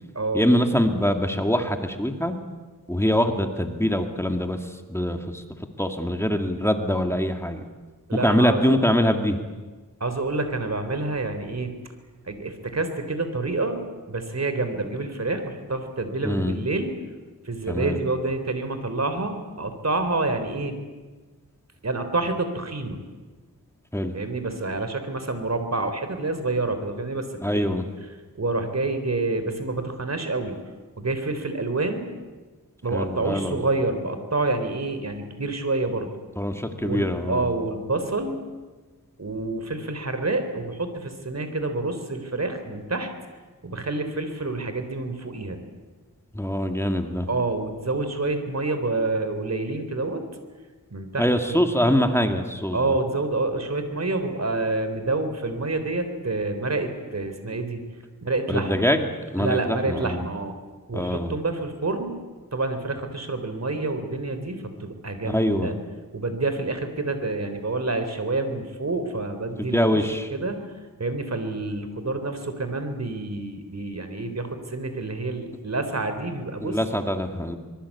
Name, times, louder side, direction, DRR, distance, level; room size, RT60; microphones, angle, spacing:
voice 1, 0.3-2.4 2.9-5.4 5.8-7.6 8.2-9.4 16.2-16.6 17.7-18.0 23.9-24.2 27.4-27.8 32.9-33.6 36.4-37.5 46.3-47.3 51.2-53.0 58.5-59.1 59.3-60.2 60.9-61.3 65.2-65.7 69.6-70.3 76.6-77.6, equal, 10° left, 5 dB, 2.3 m, -24 dB
voice 2, 8.1-8.8 10.0-11.7 12.3-13.8 14.1-16.9 17.5-20.8 21.8-23.0 24.1-27.3 27.5-27.8 28.4-30.6 31.0-32.1 32.8-36.1 36.8-38.4 39.2-43.1 43.6-45.6 47.3-50.2 50.9-51.6 52.7-57.8 58.2-58.9 59.4-60.5 60.9-62.2 62.5-65.7 66.1-70.7 71.0-76.8, right 2 dB, 50° right, 8 dB, 3.7 m, -28 dB
24.5 x 22.0 x 8.5 m, 1.3 s
wide cardioid pair, 70°, 34 cm